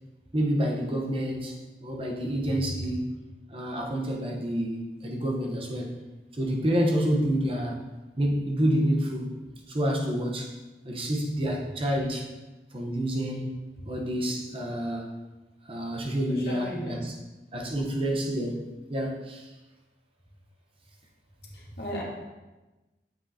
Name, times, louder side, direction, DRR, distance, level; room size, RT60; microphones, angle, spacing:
voice 1, 0.3-1.5 1.8-3.1 3.5-6.0 6.3-7.8 8.2-9.3 9.7-10.5 10.8-12.3 12.7-13.5 13.9-15.1 15.7-17.1 17.5-18.6 18.9-19.5, equal, 30° right, 0 dB, 0.9 m, -28 dB
voice 2, 16.5-16.9 21.5-22.0, equal, 65° left, -3 dB, 1.7 m, -35 dB
7.5 x 6.0 x 2.8 m, 1.1 s
head